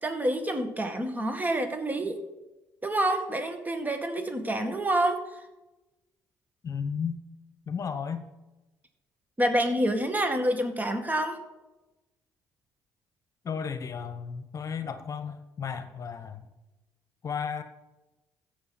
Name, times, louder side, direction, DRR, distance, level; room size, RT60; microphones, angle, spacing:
voice 1, 0.0-2.2 2.8-5.4 9.4-11.4, right 1 dB, 20° right, 6 dB, 2.0 m, -27 dB
voice 2, 6.6-7.2 7.7-8.2 13.4-16.4 17.2-17.6, left 6 dB, 45° left, 10 dB, 1.1 m, -34 dB
14.0 x 8.1 x 4.2 m, 1.0 s
hypercardioid pair, 60°, 8 cm